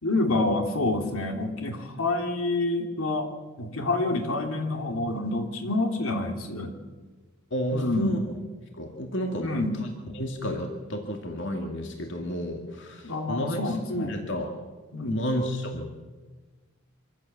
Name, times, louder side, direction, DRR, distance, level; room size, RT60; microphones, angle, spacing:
voice 1, 0.0-3.3 3.6-6.7 7.7-8.2 9.4-9.8 13.0-14.1 14.9-15.2, left 2 dB, 80° left, 3 dB, 3.1 m, -27 dB
voice 2, 7.5-8.4 8.8-9.9 10.1-14.6 15.1-15.9, equal, 55° left, 2 dB, 2.4 m, -31 dB
25.5 x 15.5 x 7.5 m, 1.3 s
head